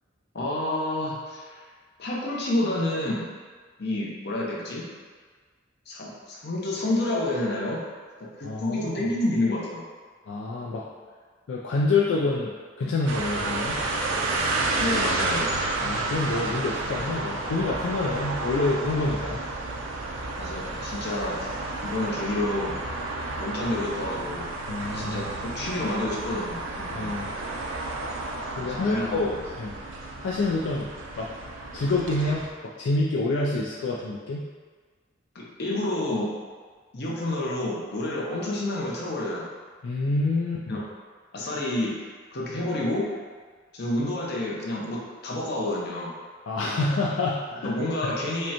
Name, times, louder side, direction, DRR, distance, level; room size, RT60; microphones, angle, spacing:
voice 1, 0.3-1.6 2.0-3.3 3.8-4.9 5.9-7.8 8.4-9.8 14.8-15.5 20.4-21.5 21.8-22.7 23.4-24.4 24.9-27.1 28.6-29.3 35.3-36.3 36.9-39.5 40.7-40.8 41.3-41.9 42.3-43.1 43.7-46.1 47.6-48.5, left 1 dB, 60° left, -4 dB, 0.8 m, -29 dB
voice 2, 8.4-9.1 10.3-10.9 11.5-12.5 12.8-13.8 15.8-19.4 24.7-25.2 26.9-27.3 28.6-29.7 30.2-30.9 31.2-31.3 31.7-34.5 39.8-40.8 46.5-48.1, left 2 dB, 80° left, -4 dB, 0.4 m, -27 dB
sound 1, 13.1-32.5, right 2 dB, 80° right, 0.5 m, -31 dB
5.1 x 2.2 x 2.9 m, 1.5 s
head